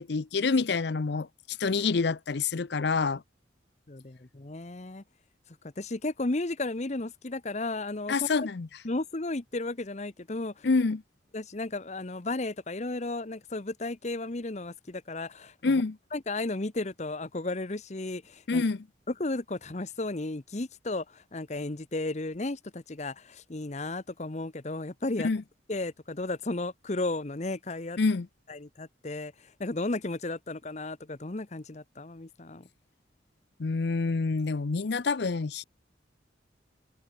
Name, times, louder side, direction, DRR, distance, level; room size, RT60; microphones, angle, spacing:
voice 1, 0.0-3.2 8.1-8.7 10.6-11.0 15.6-16.0 18.5-18.8 25.2-25.4 28.0-28.3 33.6-35.6, left 4 dB, 60° left, 0.6 m, -27 dB
voice 2, 3.9-5.0 5.8-8.3 8.8-10.7 11.3-15.8 16.1-18.6 19.1-25.3 25.7-28.0 28.5-32.7, left 2 dB, 35° left, 0.9 m, -34 dB
open air
head